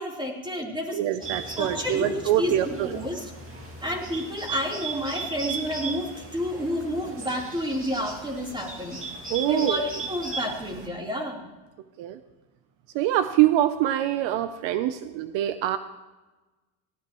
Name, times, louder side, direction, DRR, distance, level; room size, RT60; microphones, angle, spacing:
voice 1, 0.0-1.0 1.6-3.3 3.8-9.0 9.5-11.5, equal, 10° right, -1 dB, 3.7 m, -30 dB
voice 2, 0.9-2.9 9.3-9.8 12.0-12.2 12.9-15.8, right 13 dB, 65° right, 12 dB, 0.8 m, -24 dB
Bird, 1.2-10.9, right 4 dB, 25° right, 2.3 m, -37 dB
18.0 x 15.0 x 3.1 m, 1.1 s
supercardioid pair, 100°, 48 cm